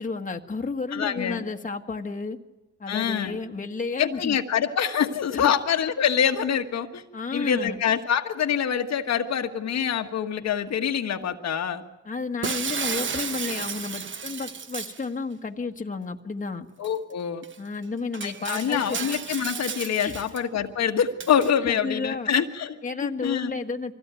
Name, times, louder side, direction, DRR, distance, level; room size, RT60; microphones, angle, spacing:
voice 1, 0.0-2.4 2.8-4.4 5.3-5.5 7.1-7.8 12.0-16.7 17.6-19.0 20.0-20.3 21.6-22.3 22.8-23.9, left 4 dB, 25° left, 4 dB, 1.6 m, -32 dB
voice 2, 0.9-1.4 2.9-3.4 4.0-7.0 7.3-11.8 16.8-17.4 18.2-22.8 23.2-23.6, left 8 dB, 60° left, 5 dB, 1.6 m, -25 dB
Shatter, 12.4-15.0 16.8-16.9 17.4-17.5 18.1-20.4 21.2-21.5, right 6 dB, 40° right, 1.2 m, -33 dB
24.5 x 16.5 x 9.1 m, 1.1 s
cardioid pair, 90°, 30 cm